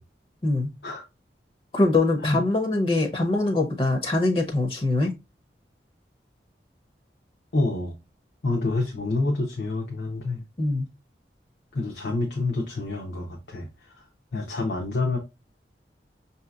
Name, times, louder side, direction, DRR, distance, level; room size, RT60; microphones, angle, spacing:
voice 1, 1.7-5.1 10.6-10.8, left 2 dB, 30° left, 0.6 m, -23 dB
voice 2, 7.5-7.9 8.4-10.4 11.7-14.0 14.3-15.2, left 2 dB, 80° left, 0.8 m, -27 dB
5.7 x 2.8 x 2.3 m
head